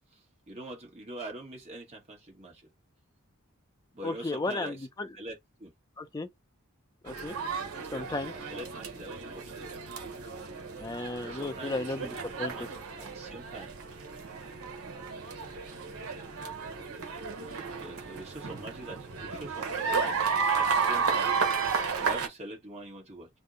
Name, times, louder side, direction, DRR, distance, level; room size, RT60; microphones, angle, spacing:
voice 1, 0.5-2.7 3.9-4.9 5.1-5.7 8.0-9.7 11.2-12.1 12.4-13.7 17.8-20.1 20.6-21.3 22.0-23.3, right 1 dB, 30° right, 1.1 m, -44 dB
voice 2, 4.0-5.1 6.0-6.3 7.0-7.3 7.9-8.3 10.8-12.1 12.4-12.5, left 2 dB, 15° left, 0.4 m, -34 dB
sound 1, 7.1-22.3, right 5 dB, 85° right, 0.8 m, -33 dB
2.6 x 2.1 x 3.6 m
head